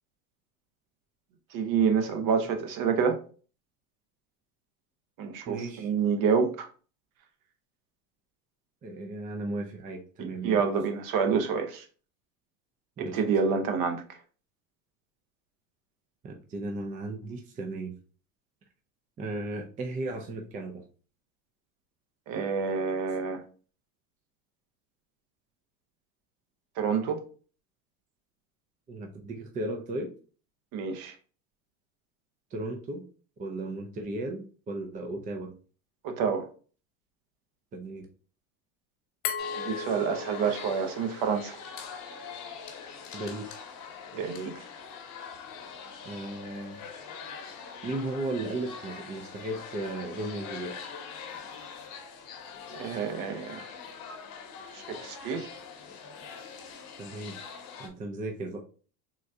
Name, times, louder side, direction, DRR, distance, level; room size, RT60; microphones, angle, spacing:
voice 1, 1.5-3.2 5.2-6.7 10.2-11.8 13.0-14.0 22.3-23.4 26.8-27.2 30.7-31.1 36.0-36.5 39.6-41.6 44.1-44.6 52.7-53.7 54.7-55.5, right 6 dB, 50° right, 0.8 m, -28 dB
voice 2, 5.5-5.9 8.8-10.7 13.0-13.2 16.2-17.9 19.2-20.8 28.9-30.1 32.5-33.0 33.4-35.5 37.7-38.1 43.1-43.6 46.0-46.8 47.8-50.7 57.0-57.4 57.8-58.6, right 2 dB, 20° right, 0.4 m, -35 dB
Glass, 39.2-42.0, left 6 dB, 80° left, 1.0 m, -37 dB
sound 1, 39.4-57.9, left 6 dB, 50° left, 0.9 m, -43 dB
3.8 x 2.2 x 2.6 m
supercardioid pair, 105°, 42 cm